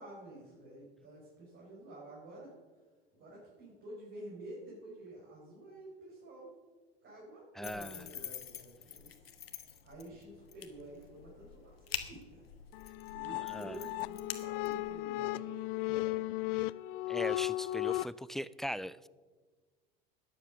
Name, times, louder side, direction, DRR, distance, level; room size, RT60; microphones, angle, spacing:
voice 1, 0.0-2.5 3.1-6.5 7.0-9.1 9.8-12.5 13.1-15.6 15.9-16.2, right 1 dB, 40° right, -4 dB, 5.3 m, -50 dB
sound 1, 7.6-15.0, left 9 dB, 85° left, 1.1 m, -46 dB
voice 2, 7.6-8.1 13.3-13.8 17.1-19.1, equal, ahead, 19 dB, 0.3 m, -40 dB
sound 2, 12.7-18.1, left 17 dB, 60° left, 0.5 m, -35 dB
12.5 x 10.0 x 6.3 m, 1.4 s
hypercardioid pair, 75°, 30 cm